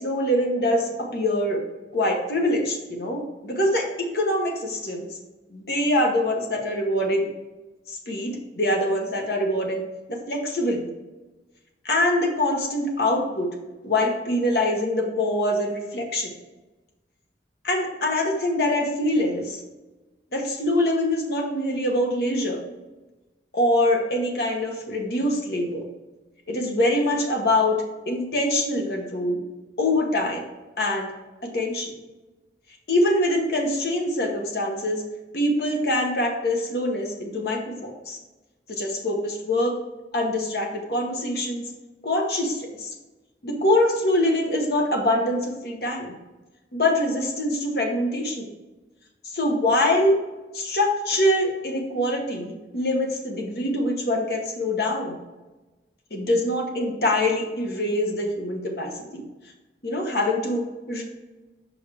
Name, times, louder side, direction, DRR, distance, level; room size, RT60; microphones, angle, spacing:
voice 1, 0.0-1.6 1.9-3.9 4.1-5.1 5.5-7.3 7.9-9.8 10.1-10.8 11.8-13.5 13.8-16.3 17.6-19.6 20.3-22.6 23.5-25.8 26.5-29.4 29.8-30.4 30.8-31.1 31.4-31.9 32.9-35.0 35.3-38.2 38.7-39.7 40.1-41.7 42.0-42.9 43.4-46.1 46.7-48.5 49.3-50.2 50.5-55.1 56.1-59.2 59.8-61.0, left 1 dB, 60° left, 1 dB, 1.2 m, -24 dB
5.5 x 5.1 x 3.4 m, 1.1 s
head